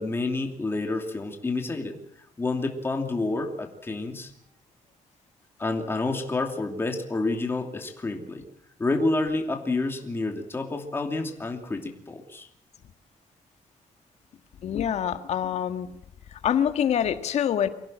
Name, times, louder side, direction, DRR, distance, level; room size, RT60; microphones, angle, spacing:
voice 1, 0.0-2.0 2.4-4.3 5.6-8.5 8.8-12.5, left 2 dB, 20° left, 3 dB, 2.8 m, -29 dB
voice 2, 14.6-15.9 16.4-17.7, left 9 dB, 65° left, 9 dB, 1.8 m, -25 dB
24.5 x 16.5 x 7.6 m, 0.74 s
cardioid pair, 155°, 12 cm